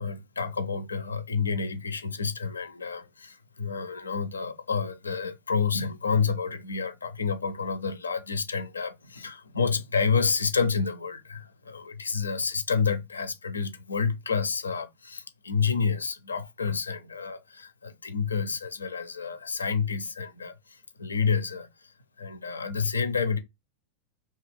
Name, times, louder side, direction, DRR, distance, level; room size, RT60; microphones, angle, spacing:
voice 1, 0.0-21.7 22.2-23.4, left 5 dB, 75° left, 0.4 m, -29 dB
2.8 x 2.3 x 3.2 m
figure-of-eight pair, 90°, 0 cm